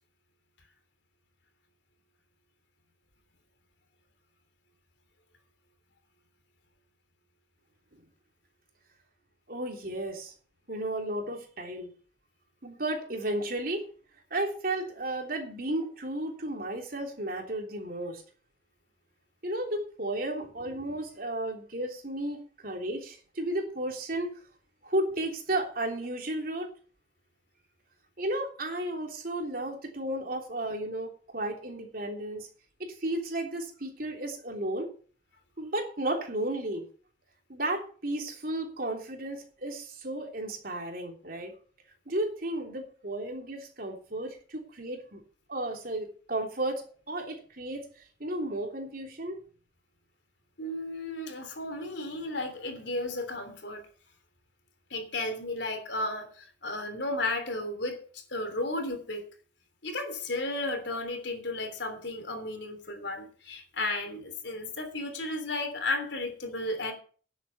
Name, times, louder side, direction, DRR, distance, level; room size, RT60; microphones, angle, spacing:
voice 1, 9.5-10.3 10.7-11.9 12.6-13.9 14.3-18.2 19.4-24.4 24.8-26.7 28.2-32.5 32.8-34.9 35.6-36.8 37.5-41.5 42.1-45.2 45.5-47.8 48.2-49.4, right 1 dB, 50° right, 3.3 m, -33 dB
voice 2, 50.6-53.8 54.9-59.2 59.8-66.9, left 2 dB, 70° left, 3.2 m, -34 dB
11.0 x 8.2 x 7.0 m
head